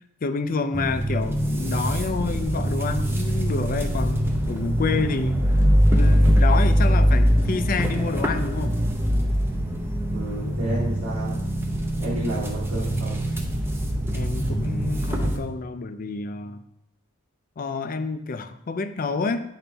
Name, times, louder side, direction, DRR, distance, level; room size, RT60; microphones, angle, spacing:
voice 1, 0.2-5.4 5.9-8.7 14.1-16.6 17.6-19.4, left 4 dB, 45° left, 9 dB, 0.4 m, -28 dB
sound 1, 0.7-15.4, equal, 10° right, 0.6 m, -22 dB
voice 2, 10.1-11.4 12.0-13.2, right 1 dB, 90° right, -7 dB, 1.3 m, -31 dB
9.2 x 4.0 x 3.4 m, 0.81 s
head